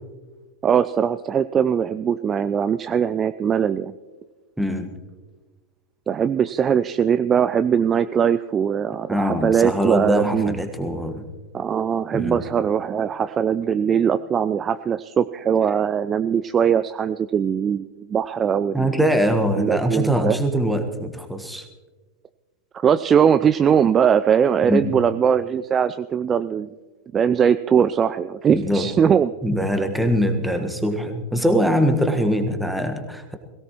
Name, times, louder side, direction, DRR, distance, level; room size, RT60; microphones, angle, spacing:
voice 1, 0.6-3.9 6.1-10.6 11.5-18.9 19.6-20.4 22.7-26.7 27.1-29.3, right 8 dB, 25° right, 13 dB, 0.4 m, -20 dB
voice 2, 4.6-4.9 9.1-11.3 12.1-12.4 18.7-21.7 24.6-25.0 28.5-28.9 29.4-33.4, equal, ahead, 5 dB, 1.5 m, -22 dB
22.0 x 17.0 x 3.1 m, 1.3 s
figure-of-eight pair, 90°, 0 cm